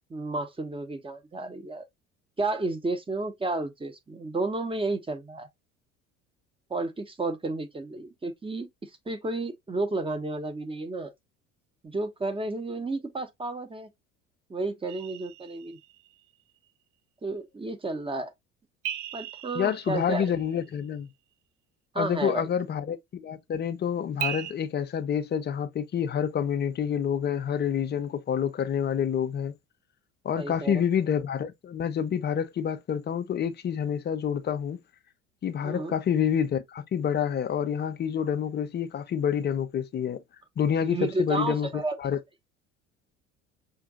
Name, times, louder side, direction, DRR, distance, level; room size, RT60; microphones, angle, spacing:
voice 1, 0.1-1.8 2.4-5.5 6.7-8.7 9.1-11.1 11.8-13.9 14.5-15.8 17.2-18.3 19.1-20.3 21.9-22.5 30.4-30.8 35.6-35.9 40.8-42.0, right 2 dB, 15° right, 0.8 m, -32 dB
sound 1, 14.9-16.2 18.8-20.9 24.2-24.5, right 10 dB, 50° right, 0.6 m, -37 dB
voice 2, 19.5-21.1 22.0-29.5 30.2-34.8 35.4-40.2 40.6-41.7 42.0-42.2, left 8 dB, 25° left, 0.5 m, -28 dB
5.7 x 2.6 x 2.4 m
figure-of-eight pair, 60°, 39 cm